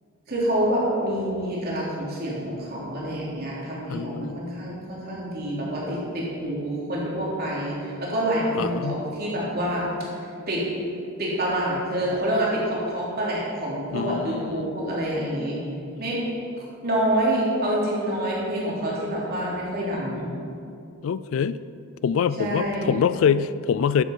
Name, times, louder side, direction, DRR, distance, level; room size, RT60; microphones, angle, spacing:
voice 1, 0.3-9.8 10.5-10.6 11.2-15.6 16.0-16.2 16.8-20.3 22.4-23.1, right 1 dB, 45° right, -5 dB, 3.3 m, -27 dB
voice 2, 3.9-4.4 8.6-9.0 13.9-14.7 21.0-21.6 22.0-24.0, left 7 dB, 65° left, 16 dB, 0.3 m, -24 dB
12.0 x 8.5 x 5.4 m, 2.5 s
head